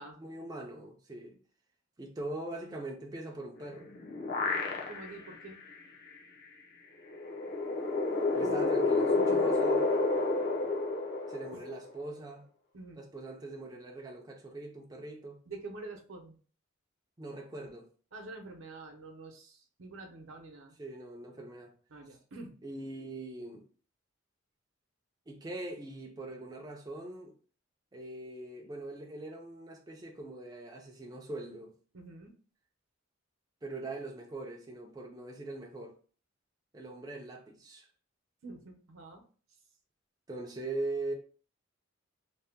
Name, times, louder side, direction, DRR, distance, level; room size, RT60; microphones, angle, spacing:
voice 1, 0.2-1.4 2.0-3.9 8.3-9.9 11.3-12.5 13.0-15.4 17.2-17.9 20.8-21.7 22.6-23.7 25.3-27.3 27.9-31.7 33.6-36.0 36.7-37.9 40.3-41.1, right 2 dB, 20° right, 0.4 m, -42 dB
sound 1, 3.6-5.3 5.7-5.8 7.1-11.9, left 3 dB, 50° left, 0.6 m, -29 dB
voice 2, 4.8-5.6 8.4-8.6 9.1-9.5 11.5-11.6 12.7-13.0 15.5-16.4 18.1-20.8 21.9-22.5 31.9-32.3 38.4-39.2, right 2 dB, 80° right, 0.7 m, -47 dB
2.7 x 2.1 x 3.4 m
head